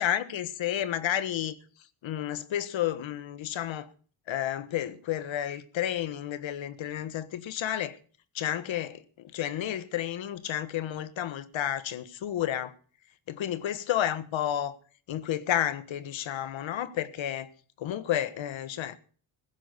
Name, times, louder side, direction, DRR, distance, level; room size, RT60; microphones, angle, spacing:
voice 1, 0.0-1.6 2.0-3.9 4.3-8.0 8.3-12.7 13.3-14.8 15.1-17.5 17.8-19.0, left 11 dB, 65° left, 1.4 m, -31 dB
16.0 x 6.0 x 9.7 m
cardioid pair, 90°, 49 cm